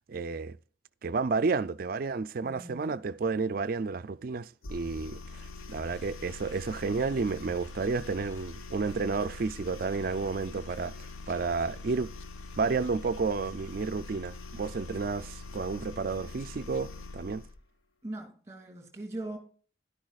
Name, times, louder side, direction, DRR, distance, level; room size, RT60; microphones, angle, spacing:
voice 1, 0.1-0.6 1.0-5.2 5.7-11.0 11.3-12.1 12.6-17.4, right 4 dB, 45° right, 0.4 m, -31 dB
voice 2, 2.4-3.0 18.0-19.4, right 1 dB, 15° right, 2.3 m, -40 dB
sound 1, 4.6-17.6, left 3 dB, 90° left, 0.8 m, -44 dB
11.5 x 10.5 x 2.4 m
head